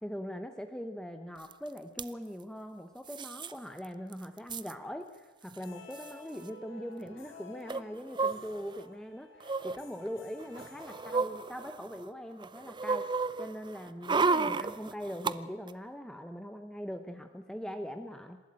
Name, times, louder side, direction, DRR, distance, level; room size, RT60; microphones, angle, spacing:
voice 1, 0.0-13.1 13.4-18.4, equal, 5° left, 6 dB, 0.8 m, -41 dB
sound 1, 1.5-1.6 1.8-2.1 3.1-3.5 3.8-3.9 4.1-4.7 5.6-5.7 5.9-6.1 7.7-8.8 9.4-9.8 10.4-12.0 12.4-15.3 15.7-15.8, right 4 dB, 25° right, 0.6 m, -32 dB
sound 2, 5.5-11.8, left 2 dB, 85° left, 4.4 m, -53 dB
27.0 x 13.0 x 9.0 m, 1.3 s
head